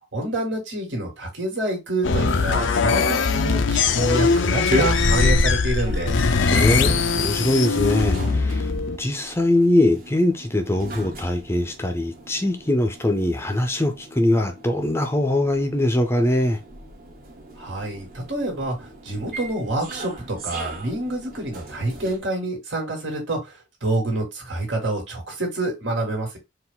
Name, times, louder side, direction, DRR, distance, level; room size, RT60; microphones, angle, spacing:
voice 1, 0.1-6.2 17.6-26.4, right 2 dB, 85° right, 2.2 m, -27 dB
sound 1, 2.0-9.0, left 4 dB, 85° left, 0.5 m, -21 dB
sound 2, 4.5-22.2, equal, 50° right, 1.0 m, -32 dB
voice 2, 6.3-8.7 9.0-16.6, left 1 dB, 15° left, 0.5 m, -22 dB
4.6 x 2.5 x 3.7 m
head